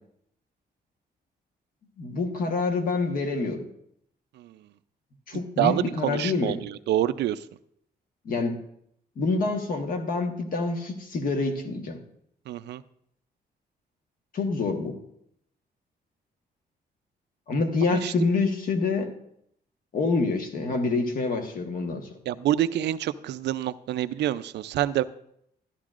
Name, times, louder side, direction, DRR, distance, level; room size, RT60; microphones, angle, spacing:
voice 1, 2.0-3.7 5.3-6.6 8.2-8.6 9.2-12.0 14.3-15.0 17.5-19.1 19.9-22.1, left 3 dB, 55° left, 4 dB, 1.3 m, -27 dB
voice 2, 5.6-7.4 12.5-12.8 17.9-18.1 22.3-25.0, right 12 dB, 90° right, 14 dB, 0.4 m, -27 dB
13.5 x 11.5 x 2.5 m, 0.73 s
cardioid pair, 150°, 17 cm